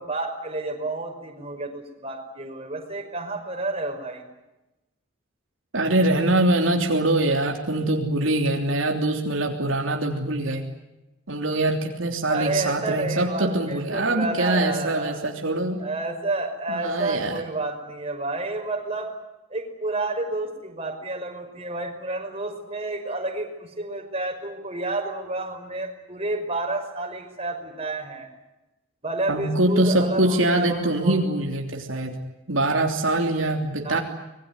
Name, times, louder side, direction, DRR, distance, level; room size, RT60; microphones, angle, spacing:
voice 1, 0.0-4.2 12.3-15.2 15.8-19.1 19.5-28.3 29.0-31.2 33.8-34.0, right 2 dB, 30° right, 3 dB, 5.7 m, -30 dB
voice 2, 5.7-10.6 11.3-15.8 16.7-17.4 29.3-32.2 32.5-34.0, right 1 dB, 75° right, 2 dB, 3.2 m, -23 dB
25.5 x 22.0 x 9.7 m, 0.97 s
head